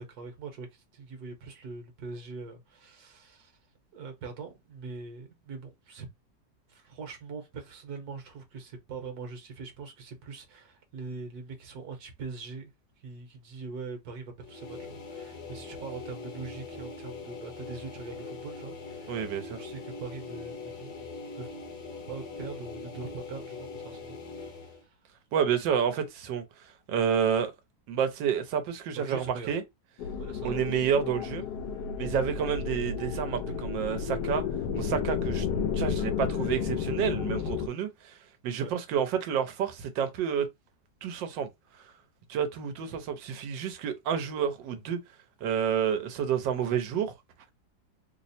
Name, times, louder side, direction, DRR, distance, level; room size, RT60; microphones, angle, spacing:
voice 1, 0.0-3.5 3.9-6.1 6.7-12.7 13.0-19.3 19.6-21.1 21.3-21.5 22.1-25.0 29.0-29.5 30.2-30.8 33.3-33.4 38.6-38.7, right 4 dB, 65° right, 1.4 m, -42 dB
sound 1, 14.4-24.8, left 3 dB, 50° left, 1.1 m, -42 dB
voice 2, 19.1-19.6 25.3-26.4 26.9-27.5 27.9-29.6 30.4-31.4 32.0-34.4 34.7-35.5 35.7-38.2 38.4-40.5 41.0-41.5 42.3-45.0 45.4-47.1, right 8 dB, 85° right, 1.4 m, -29 dB
sound 2, 30.0-37.7, left 6 dB, 75° left, 1.1 m, -32 dB
3.3 x 2.0 x 4.1 m
omnidirectional pair, 1.9 m